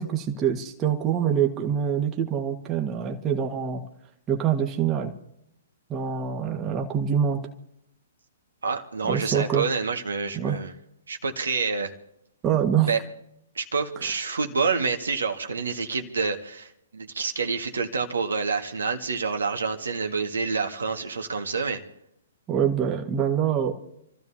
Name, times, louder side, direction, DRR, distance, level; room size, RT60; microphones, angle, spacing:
voice 1, 0.0-3.8 4.3-5.1 5.9-7.4 9.0-9.7 10.3-10.6 12.4-12.9 14.0-14.1 22.5-23.7, right 8 dB, 20° right, 2 dB, 1.6 m, -25 dB
voice 2, 8.6-10.7 11.1-11.9 12.9-13.0 13.6-21.8, right 4 dB, 70° right, 4 dB, 1.8 m, -28 dB
28.0 x 14.5 x 2.9 m, 0.78 s
figure-of-eight pair, 115°, 0 cm